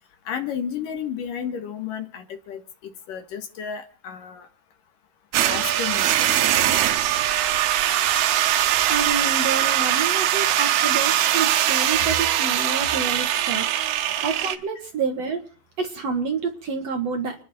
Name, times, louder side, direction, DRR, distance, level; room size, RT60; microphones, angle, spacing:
voice 1, 0.3-2.6 3.1-4.5 5.5-6.3, left 8 dB, 65° left, 7 dB, 3.2 m, -32 dB
sound 1, 5.3-14.6, right 12 dB, 85° right, 3.1 m, -21 dB
voice 2, 8.9-13.6 14.2-15.4 15.8-17.3, right 5 dB, 50° right, 5 dB, 2.3 m, -28 dB
29.5 x 10.5 x 4.4 m, 0.38 s
omnidirectional pair, 4.4 m